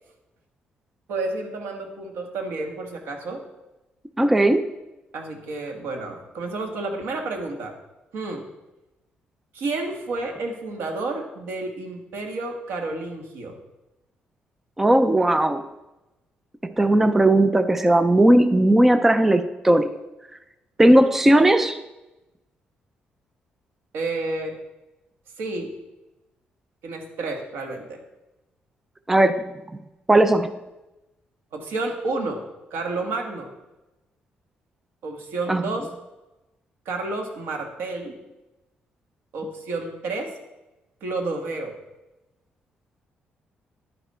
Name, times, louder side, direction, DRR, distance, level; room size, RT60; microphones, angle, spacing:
voice 1, 1.1-3.4 5.1-7.7 8.1-8.5 9.5-13.6 23.9-24.5 25.4-25.7 26.8-28.0 31.5-32.4 32.7-33.5 35.0-35.9 36.9-38.2 39.3-40.3 41.0-41.7, right 3 dB, 85° right, 3 dB, 1.9 m, -30 dB
voice 2, 4.2-4.7 14.8-15.7 16.8-20.0 20.8-21.8 29.1-29.4 30.1-30.5 35.5-35.6, right 1 dB, 10° right, 10 dB, 0.4 m, -17 dB
11.0 x 9.3 x 4.4 m, 1.0 s
cardioid pair, 175°, 4 cm